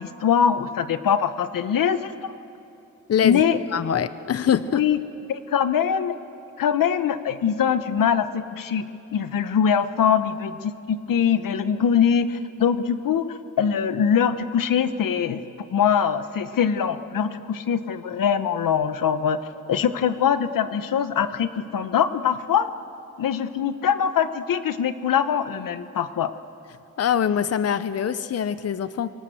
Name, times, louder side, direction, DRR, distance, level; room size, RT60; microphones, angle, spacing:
voice 1, 0.0-2.3 3.2-3.6 4.7-5.0 5.3-6.2 6.6-8.9 9.1-15.4 15.7-19.4 19.7-22.7 23.2-26.3, left 8 dB, 85° left, 11 dB, 1.1 m, -23 dB
voice 2, 3.1-3.4 3.7-4.8 27.0-29.1, left 8 dB, 50° left, 13 dB, 0.8 m, -23 dB
27.0 x 24.5 x 7.8 m, 2.8 s
wide cardioid pair, 120°, 32 cm